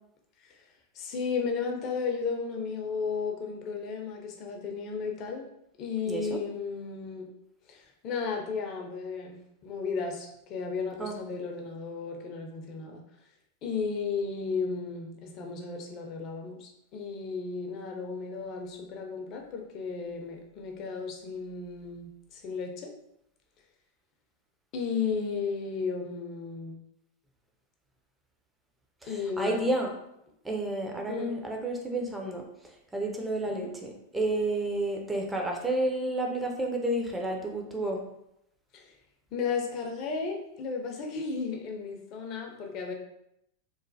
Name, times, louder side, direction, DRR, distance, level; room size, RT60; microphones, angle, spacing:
voice 1, 0.9-5.4 5.8-7.3 7.7-13.0 13.6-22.9 24.7-26.8 29.1-29.6 31.1-31.4 33.5-33.7 38.7-38.9 39.3-42.9, left 5 dB, 45° left, 2 dB, 0.5 m, -34 dB
voice 2, 6.1-6.4 11.0-11.2 29.0-29.9 30.4-32.5 32.9-38.0, right 1 dB, 10° right, 1 dB, 0.6 m, -30 dB
3.0 x 2.0 x 2.6 m, 0.80 s
hypercardioid pair, 95°, 0 cm